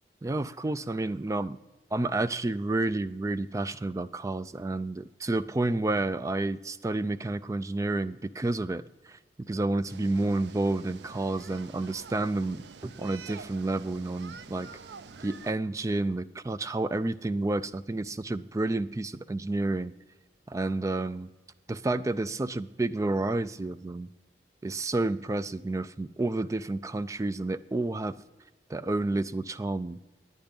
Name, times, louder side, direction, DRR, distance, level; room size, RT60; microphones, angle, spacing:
voice 1, 0.2-1.6 1.9-14.7 15.2-19.9 20.5-21.3 21.7-24.1 24.6-28.2 28.7-30.0, right 2 dB, 20° right, 15 dB, 0.3 m, -30 dB
sound 1, 9.9-15.5, right 5 dB, 75° right, 0.5 m, -47 dB
10.5 x 9.3 x 5.2 m, 1.1 s
head